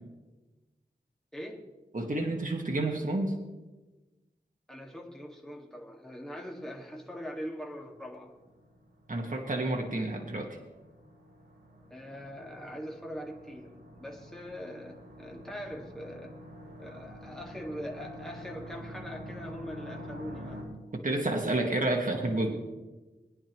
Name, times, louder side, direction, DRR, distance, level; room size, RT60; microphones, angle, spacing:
voice 1, 1.3-1.7 4.7-8.4 11.9-16.3 16.8-20.8 22.0-22.6, equal, 5° left, 0 dB, 1.8 m, -42 dB
voice 2, 1.9-3.4 9.1-10.5 20.9-22.5, right 2 dB, 50° right, 1 dB, 1.6 m, -30 dB
sound 1, 7.6-20.6, equal, 75° right, 4.4 m, -47 dB
21.0 x 10.0 x 3.0 m, 1.2 s
wide cardioid pair, 65°, 18 cm